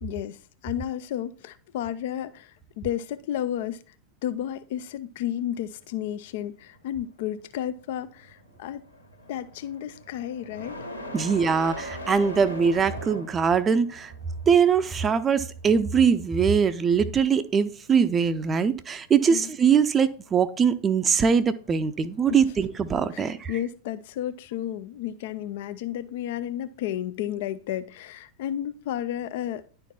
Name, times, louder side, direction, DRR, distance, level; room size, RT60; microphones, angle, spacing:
voice 1, 0.0-3.9 4.2-8.8 9.3-10.8 19.3-19.5 22.3-22.4 23.1-29.6, left 11 dB, 50° left, 0.4 m, -32 dB
sound 1, 5.4-23.4, equal, 85° left, 1.3 m, -43 dB
voice 2, 11.1-14.1 14.5-23.5, right 6 dB, 20° right, 0.5 m, -22 dB
10.5 x 4.4 x 4.2 m
figure-of-eight pair, 90°, 0 cm